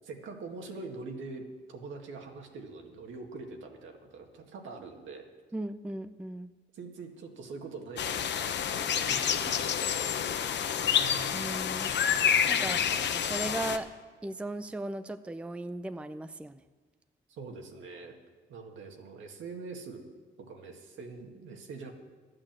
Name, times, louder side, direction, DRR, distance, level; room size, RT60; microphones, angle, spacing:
voice 1, 0.0-5.3 6.7-11.3 12.6-13.0 17.3-18.1 18.5-20.0 20.4-21.9, right 4 dB, 75° right, 3 dB, 1.9 m, -44 dB
voice 2, 5.5-6.5 11.3-11.9 12.5-12.8 13.1-13.9 14.2-16.6, right 2 dB, 5° right, 11 dB, 0.5 m, -37 dB
sound 1, 8.0-13.8, left 8 dB, 60° left, 0.9 m, -28 dB
13.0 x 8.8 x 7.5 m, 1.4 s
cardioid pair, 90°, 20 cm